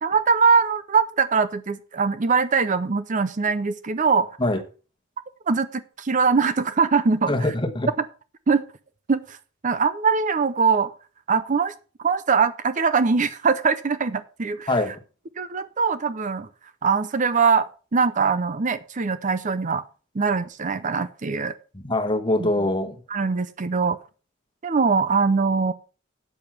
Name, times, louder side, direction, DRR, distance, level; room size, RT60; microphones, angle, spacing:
voice 1, 0.0-4.3 5.5-7.5 8.5-8.6 9.1-9.4 9.6-10.9 11.3-11.7 12.0-14.8 15.4-16.5 16.8-19.8 20.1-21.5 22.4-22.5 23.1-24.0 24.6-25.7, right 5 dB, 40° right, 0.6 m, -22 dB
voice 2, 7.3-7.9 14.7-15.0 21.7-23.0, left 1 dB, 25° left, 1.3 m, -23 dB
8.7 x 7.1 x 5.8 m
head